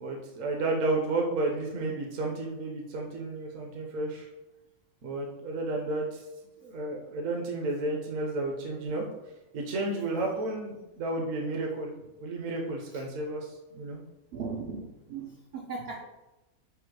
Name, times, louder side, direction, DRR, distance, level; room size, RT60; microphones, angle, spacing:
voice 1, 0.0-4.3 5.0-6.2 6.6-9.1 9.5-11.9 12.2-14.0, right 2 dB, 60° right, 0 dB, 1.0 m, -32 dB
voice 2, 14.3-16.0, right 4 dB, 80° right, -1 dB, 0.5 m, -38 dB
5.0 x 2.0 x 4.6 m, 0.98 s
omnidirectional pair, 1.6 m